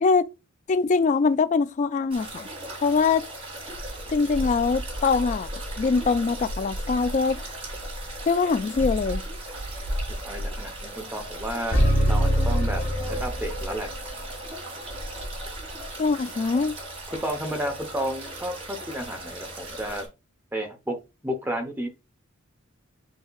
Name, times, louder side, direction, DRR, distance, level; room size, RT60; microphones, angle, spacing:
voice 1, 0.7-2.5 2.8-3.2 4.1-5.5 5.8-7.4 8.3-9.2 16.0-16.7, left 4 dB, 35° left, 0.3 m, -23 dB
sound 1, 2.1-20.1, right 1 dB, 30° right, 2.0 m, -35 dB
voice 2, 10.2-11.8 12.1-13.9 17.1-20.0 20.5-21.0 21.2-21.9, equal, 10° right, 0.8 m, -32 dB
sound 2, 11.7-13.8, equal, 75° left, 1.4 m, -22 dB
8.0 x 2.8 x 2.2 m
head